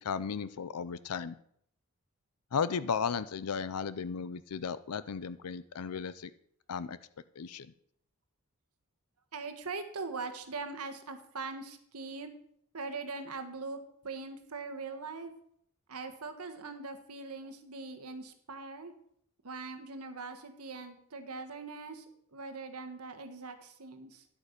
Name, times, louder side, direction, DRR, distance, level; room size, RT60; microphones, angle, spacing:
voice 1, 0.0-1.3 2.5-6.3 6.7-7.0 7.4-7.7, left 6 dB, 90° left, 15 dB, 0.5 m, -35 dB
voice 2, 9.3-12.3 12.7-13.8 14.0-15.3 15.9-18.9 19.4-22.0 22.3-24.3, right 4 dB, 80° right, 7 dB, 1.4 m, -41 dB
11.0 x 8.4 x 5.2 m, 0.68 s
head